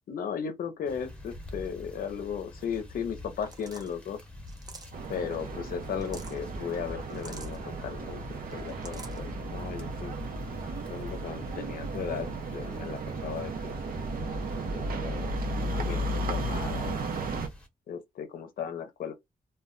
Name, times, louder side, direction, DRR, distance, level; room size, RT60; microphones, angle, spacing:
voice 1, 0.1-4.2 5.1-10.1 10.9-13.8 14.3-15.4 15.8-17.0 17.9-19.1, left 7 dB, 80° left, 0.5 m, -36 dB
sound 1, 0.9-17.7, left 1 dB, 10° left, 0.9 m, -48 dB
sound 2, 3.4-3.9 4.5-5.1 5.8-6.4 7.1-7.6 8.5-9.2, right 2 dB, 25° right, 0.6 m, -46 dB
sound 3, 4.9-17.5, right 2 dB, 80° right, 0.6 m, -34 dB
2.2 x 2.1 x 3.7 m
wide cardioid pair, 115°, 15 cm